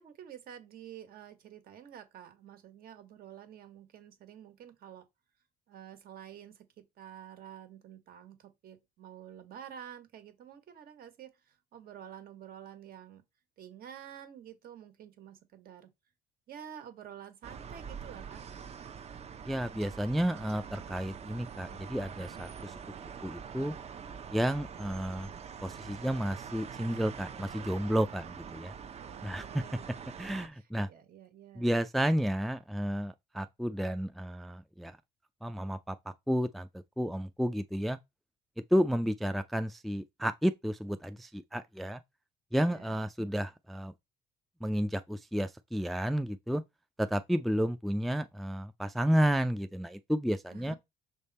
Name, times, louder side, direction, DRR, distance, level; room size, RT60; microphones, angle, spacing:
voice 1, 0.0-5.1 5.7-6.7 7.0-13.2 13.6-15.9 16.5-18.4 29.0-29.9 30.5-31.7 42.6-42.9 50.5-50.8, right 9 dB, 60° right, 1.6 m, -49 dB
sound 1, 17.4-30.5, right 7 dB, 40° right, 0.7 m, -45 dB
voice 2, 19.5-22.7 23.2-23.7 24.3-25.3 25.6-28.7 29.2-29.5 30.2-30.9 31.6-34.9 35.4-35.9 36.3-36.7 37.0-38.0 38.7-42.0 42.5-43.9 44.6-46.6 47.0-50.7, equal, ahead, 0.3 m, -31 dB
6.5 x 3.5 x 4.1 m
cardioid pair, 110°, 17 cm